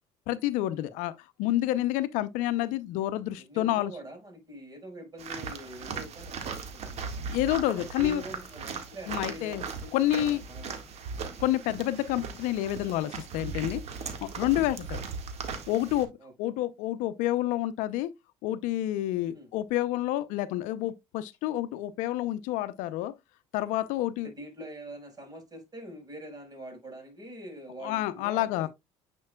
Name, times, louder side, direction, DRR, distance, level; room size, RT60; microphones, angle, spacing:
voice 1, 0.3-1.1 1.4-3.9 7.3-8.2 9.1-9.6 9.9-10.4 11.4-15.0 15.7-16.1 16.4-18.1 18.4-23.1 23.5-24.3 27.8-28.7, left 14 dB, 75° left, 0.6 m, -29 dB
voice 2, 3.4-7.3 7.7-10.8 11.2-11.4 16.2-16.3 19.1-19.5 24.2-28.7, right 1 dB, 30° right, 4.9 m, -45 dB
sound 1, 5.2-16.0, right 5 dB, 55° right, 1.8 m, -38 dB
9.5 x 5.3 x 2.3 m
supercardioid pair, 75°, 13 cm